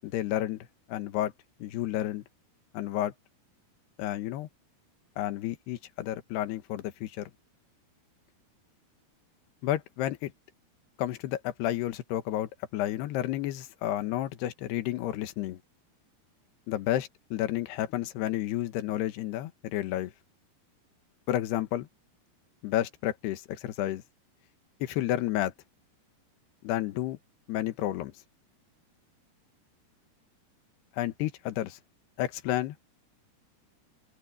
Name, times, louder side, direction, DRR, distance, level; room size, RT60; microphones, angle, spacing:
voice 1, 0.0-1.3 1.6-2.2 2.7-3.1 4.0-4.5 5.2-7.3 9.6-10.3 11.0-15.6 16.7-20.1 21.3-21.9 22.6-24.0 24.8-25.5 26.6-27.2 27.5-28.1 30.9-31.8 32.2-32.9, left 13 dB, 80° left, 3.4 m, -31 dB
open air
omnidirectional pair, 4.6 m